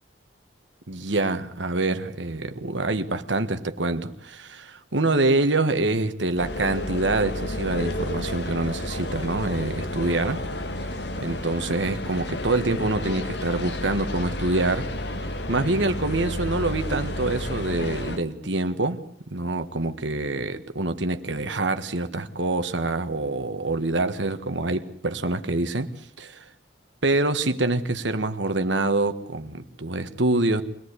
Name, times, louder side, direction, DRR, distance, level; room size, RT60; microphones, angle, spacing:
voice 1, 0.9-10.4 11.2-14.9 15.5-19.0 19.3-25.9 26.2-26.4 27.0-30.6, right 2 dB, 80° right, 9 dB, 1.6 m, -26 dB
sound 1, 6.4-18.2, left 1 dB, 65° left, 1.9 m, -31 dB
24.0 x 19.0 x 8.3 m, 0.62 s
head